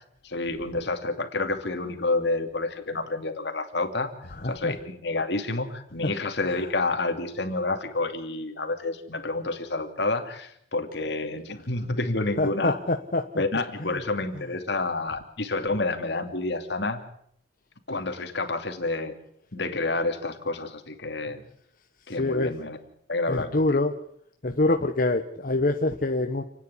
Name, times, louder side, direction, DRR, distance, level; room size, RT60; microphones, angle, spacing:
voice 1, 0.2-4.1 4.4-12.8 13.4-17.0 17.9-19.1 19.5-21.4 22.1-22.8 23.1-23.8, left 2 dB, 65° left, 6 dB, 2.7 m, -29 dB
voice 2, 4.4-4.7 12.4-13.2 13.8-13.9 22.1-22.5 23.3-23.9 24.4-26.4, left 2 dB, 50° left, 5 dB, 1.2 m, -25 dB
29.0 x 10.0 x 9.9 m, 0.71 s
head